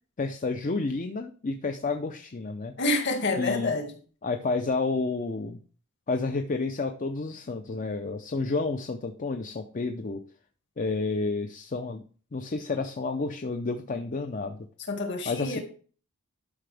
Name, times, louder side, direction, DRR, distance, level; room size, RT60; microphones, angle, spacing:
voice 1, 0.2-2.8 3.4-3.8 4.2-5.6 6.1-10.2 10.8-12.0 12.3-14.6 15.3-15.6, left 3 dB, 35° left, 6 dB, 0.6 m, -30 dB
voice 2, 2.8-3.9 14.9-15.6, left 2 dB, 55° left, 3 dB, 2.0 m, -27 dB
11.5 x 5.8 x 3.4 m, 0.41 s
head